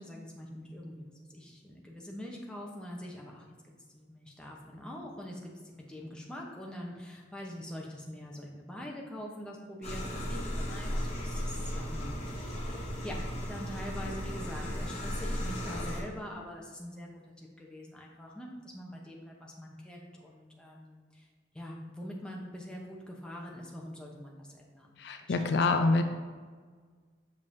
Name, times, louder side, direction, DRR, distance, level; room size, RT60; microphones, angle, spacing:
voice 1, 0.0-3.4 3.9-21.3 21.5-25.0 25.3-25.4 25.7-25.9, equal, 5° left, -2 dB, 0.8 m, -44 dB
sound 1, 9.8-16.0, equal, 35° left, 1.1 m, -35 dB
voice 2, 25.0-26.0, left 3 dB, 60° left, 6 dB, 0.4 m, -26 dB
6.8 x 5.3 x 2.6 m, 1.5 s
head